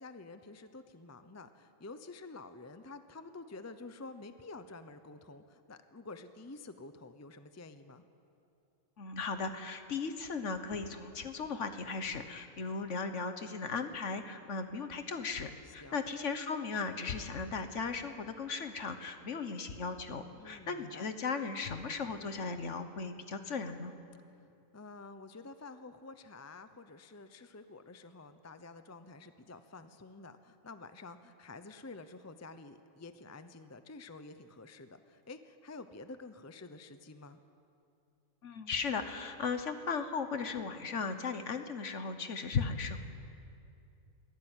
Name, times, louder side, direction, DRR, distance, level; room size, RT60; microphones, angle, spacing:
voice 1, 0.0-8.0 15.6-16.0 20.3-21.1 24.3-37.4, left 3 dB, 15° left, 10 dB, 0.6 m, -49 dB
voice 2, 9.0-23.9 38.4-43.0, left 5 dB, 60° left, 8 dB, 1.5 m, -37 dB
23.0 x 15.5 x 9.1 m, 2.6 s
omnidirectional pair, 1.4 m